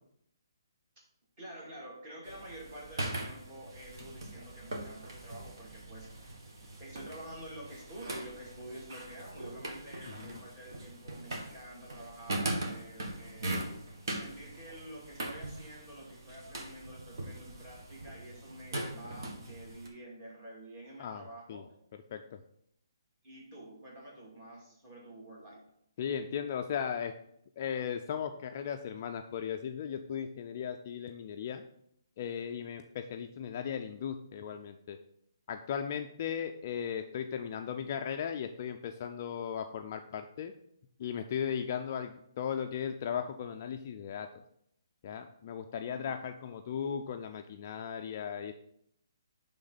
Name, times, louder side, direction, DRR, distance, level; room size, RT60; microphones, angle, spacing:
voice 1, 1.4-6.3 6.8-13.6 14.1-21.7 23.2-25.6 45.8-46.1, right 1 dB, 25° right, -4 dB, 2.4 m, -48 dB
sound 1, 2.2-19.9, right 1 dB, 60° right, 1.6 m, -41 dB
voice 2, 10.1-10.4 21.0-21.6 22.1-22.4 26.0-27.1 27.6-31.6 32.2-35.0 35.5-40.5 41.0-44.3 45.0-48.5, left 8 dB, 30° left, 6 dB, 0.3 m, -37 dB
11.0 x 3.6 x 4.0 m, 0.73 s
hypercardioid pair, 170°, 2 cm